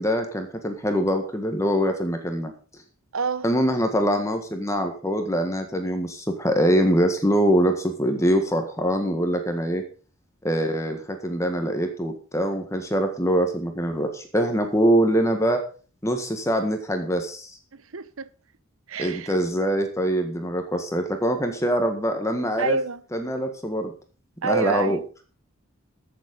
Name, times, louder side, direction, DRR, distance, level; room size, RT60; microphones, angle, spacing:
voice 1, 0.0-2.5 3.4-9.8 10.4-15.6 16.0-17.5 19.0-22.8 23.1-23.9 24.4-25.0, equal, 15° left, 1.6 m, -23 dB
voice 2, 3.1-3.5 17.7-18.3 18.9-19.4 22.6-23.0 24.4-25.0, right 4 dB, 75° right, 0.8 m, -27 dB
14.5 x 7.4 x 5.3 m
head